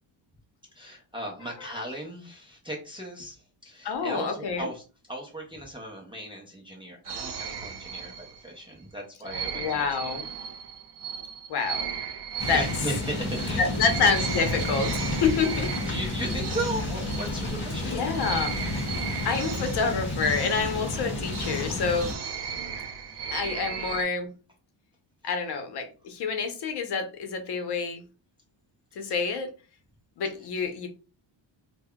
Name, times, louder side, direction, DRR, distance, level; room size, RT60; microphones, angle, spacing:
voice 1, 0.7-9.9 12.5-13.7 15.5-18.0 23.1-23.6 25.2-25.3 29.1-29.2, right 1 dB, 10° right, -2 dB, 0.4 m, -37 dB
voice 2, 3.8-4.7 9.5-10.3 11.5-11.9 12.4-12.6 13.6-15.7 17.7-18.9 19.2-22.1 23.3-24.3 25.2-28.0 29.0-29.5 30.2-30.9, left 5 dB, 60° left, 6 dB, 0.8 m, -28 dB
sound 1, 7.1-8.6 9.2-17.8 18.1-24.0, right 7 dB, 60° right, 0.7 m, -36 dB
sound 2, 12.4-22.1, left 2 dB, 25° left, 1.3 m, -31 dB
5.3 x 2.2 x 2.2 m, 0.34 s
cardioid pair, 175°, 46 cm